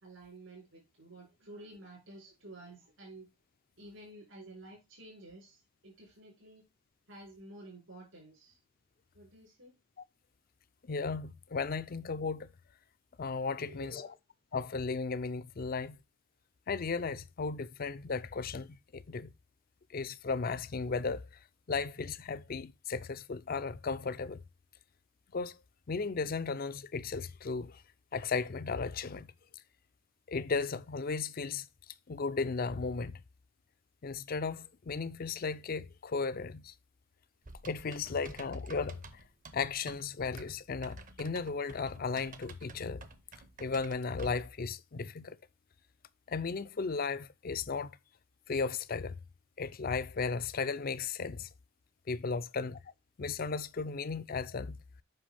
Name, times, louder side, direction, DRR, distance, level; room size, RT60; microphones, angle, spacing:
voice 1, 0.0-3.3 3.8-6.6 7.1-8.6 9.1-9.7 13.5-14.2, right 1 dB, 75° right, 4.1 m, -51 dB
voice 2, 10.9-12.5 13.2-14.1 14.5-16.0 16.7-19.3 19.9-21.3 21.7-24.4 25.3-25.6 25.9-27.8 28.1-29.3 30.3-31.7 32.1-33.2 34.0-36.7 37.6-39.0 39.5-43.0 43.6-45.4 46.3-47.9 48.5-49.2 49.6-51.5 52.1-52.8 53.2-54.8, left 4 dB, 45° left, 0.5 m, -35 dB
Typing, 37.4-44.5, right 3 dB, 40° right, 0.8 m, -51 dB
7.6 x 5.6 x 3.4 m
head